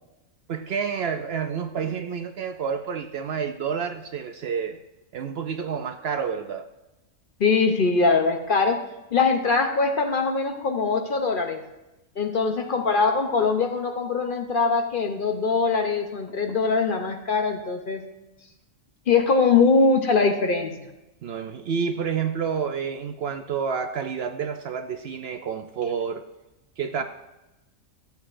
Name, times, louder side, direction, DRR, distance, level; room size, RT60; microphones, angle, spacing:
voice 1, 0.5-4.8 5.1-6.7 16.3-16.4 21.2-26.2 26.8-27.0, right 6 dB, 65° right, 7 dB, 0.7 m, -29 dB
voice 2, 7.4-8.8 9.1-11.6 12.2-18.0 19.1-20.7, left 4 dB, 50° left, 5 dB, 0.8 m, -22 dB
13.0 x 8.1 x 2.5 m, 0.99 s
omnidirectional pair, 1.3 m